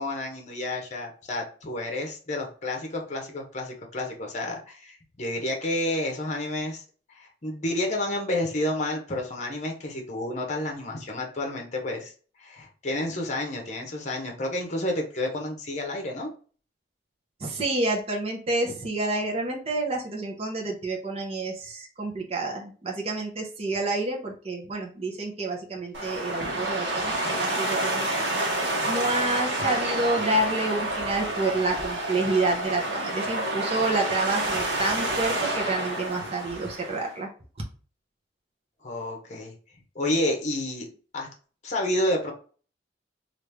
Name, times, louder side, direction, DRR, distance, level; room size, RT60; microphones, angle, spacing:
voice 1, 0.0-6.8 7.2-12.1 12.4-16.3 38.8-39.5 39.9-40.9 41.1-41.3 41.6-42.3, left 1 dB, 40° left, 2 dB, 0.9 m, -30 dB
voice 2, 17.4-28.6 28.9-37.3, right 2 dB, 35° right, 0 dB, 0.7 m, -29 dB
sound 1, 25.9-37.1, right 1 dB, 70° right, 1.0 m, -29 dB
3.1 x 2.5 x 3.3 m, 0.39 s
head